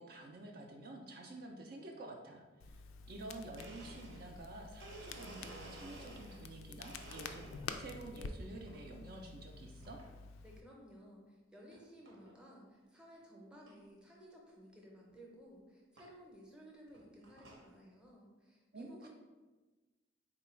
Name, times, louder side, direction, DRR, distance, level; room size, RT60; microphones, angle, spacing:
voice 1, 0.0-2.8 3.1-10.0 18.7-19.1, right 2 dB, 50° right, 1 dB, 0.4 m, -49 dB
Crackle, 2.6-10.6, left 4 dB, 80° left, 0.3 m, -49 dB
Domestic sounds home sounds, 3.6-6.5 6.8-7.9 8.3-8.8 9.8-10.1 10.7-10.8 11.7-11.8 12.1-12.4 12.8-12.9 13.1-13.2 13.7-13.8 15.1-15.2 16.0-16.1 16.8-17.7, right 2 dB, 70° right, 0.8 m, -54 dB
voice 2, 10.4-19.1, equal, 5° right, -2 dB, 0.6 m, -57 dB
3.8 x 2.3 x 4.3 m, 1.3 s
head